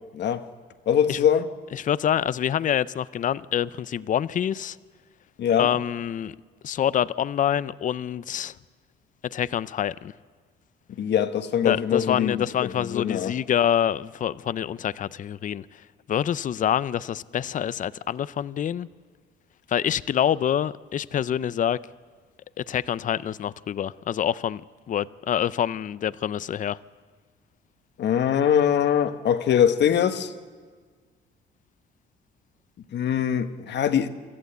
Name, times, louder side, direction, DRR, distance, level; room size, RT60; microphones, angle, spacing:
voice 1, 0.9-1.4 5.4-5.7 11.0-13.3 28.0-30.3 32.9-34.1, left 9 dB, 60° left, 1.3 m, -22 dB
voice 2, 1.7-4.8 5.6-6.4 6.6-8.6 9.2-10.1 11.6-15.7 16.1-18.9 19.7-21.8 22.6-26.8, left 9 dB, 40° left, 0.5 m, -26 dB
25.5 x 14.0 x 8.0 m
cardioid pair, 95°, 20 cm